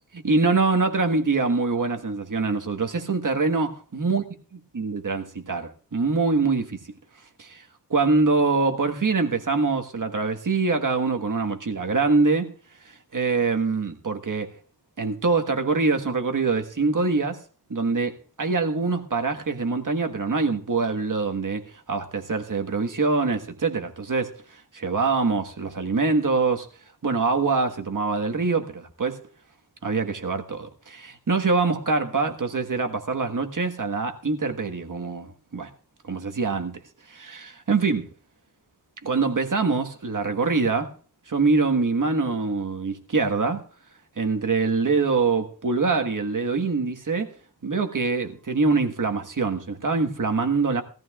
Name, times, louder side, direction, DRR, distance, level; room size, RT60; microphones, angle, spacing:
voice 1, 0.1-4.2 4.5-6.8 7.4-7.6 7.9-12.5 12.8-14.6 15.0-17.4 17.7-26.7 27.0-29.2 29.8-35.7 36.1-36.8 37.1-38.0 39.0-40.9 41.3-43.7 44.2-47.3 47.6-50.8, right 4 dB, 50° right, 1.5 m, -24 dB
19.5 x 14.5 x 2.4 m
wide cardioid pair, 75°, 41 cm